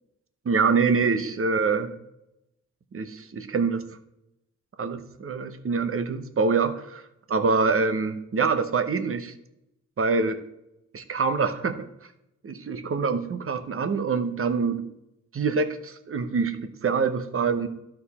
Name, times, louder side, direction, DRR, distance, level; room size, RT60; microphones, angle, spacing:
voice 1, 0.4-2.0 2.9-3.8 4.8-9.3 10.0-10.4 10.9-11.9 12.4-14.9 15.3-17.7, right 4 dB, 50° right, 9 dB, 0.8 m, -25 dB
12.5 x 4.6 x 4.2 m, 0.85 s
wide cardioid pair, 100°, 29 cm